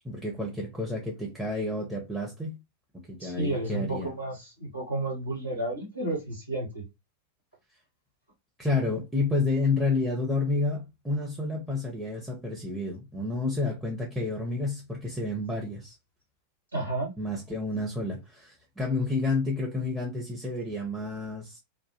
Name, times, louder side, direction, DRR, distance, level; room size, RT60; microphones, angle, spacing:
voice 1, 0.0-2.6 3.1-4.1 8.6-15.9 17.2-21.6, left 3 dB, 5° right, 0.6 m, -30 dB
voice 2, 3.2-6.8 16.7-17.1, right 2 dB, 85° right, 1.3 m, -32 dB
2.3 x 2.1 x 2.7 m
figure-of-eight pair, 90°, 0 cm